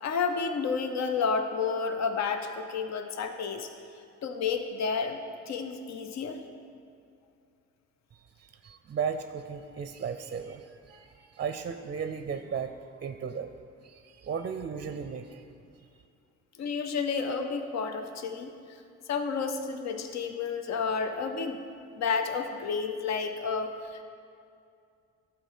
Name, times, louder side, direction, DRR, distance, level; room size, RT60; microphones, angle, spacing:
voice 1, 0.0-3.7 4.2-5.2 5.5-6.4 16.6-18.8 19.1-21.6 21.9-24.0, left 5 dB, 65° left, 7 dB, 0.8 m, -31 dB
voice 2, 8.4-12.7 13.0-13.5 13.8-15.4 15.8-15.9, right 6 dB, 35° right, 8 dB, 0.5 m, -35 dB
12.5 x 4.5 x 7.4 m, 2.4 s
cardioid pair, 90°, 30 cm